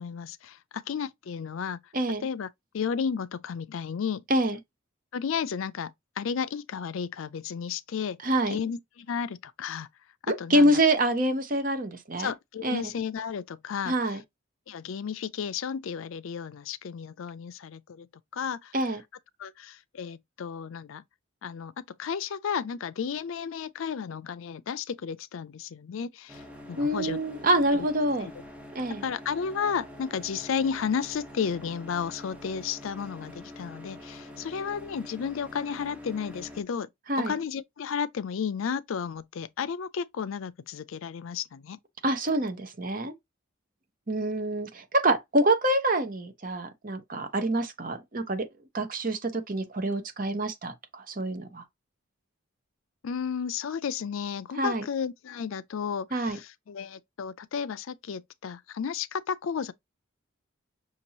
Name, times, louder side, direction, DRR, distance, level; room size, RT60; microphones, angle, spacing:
voice 1, 0.0-1.8 2.2-2.5 2.7-4.2 5.1-8.2 8.5-9.9 10.2-10.8 12.2-14.2 14.7-18.1 18.3-18.8 19.4-21.0 21.4-26.4 26.7-27.2 27.7-27.9 28.2-28.3 28.9-36.9 37.2-41.8 53.0-59.7, left 6 dB, 70° left, 0.4 m, -33 dB
voice 2, 1.9-2.3 4.3-4.6 8.2-8.6 10.3-12.3 12.6-12.8 13.9-14.2 18.7-19.0 26.8-28.3 28.7-29.0 37.1-37.3 42.0-43.1 44.1-48.5 48.7-51.6 54.6-54.8 56.1-56.4, right 1 dB, 40° right, 0.8 m, -26 dB
sound 1, 26.3-36.6, left 1 dB, 5° right, 0.7 m, -45 dB
5.9 x 2.9 x 2.8 m
head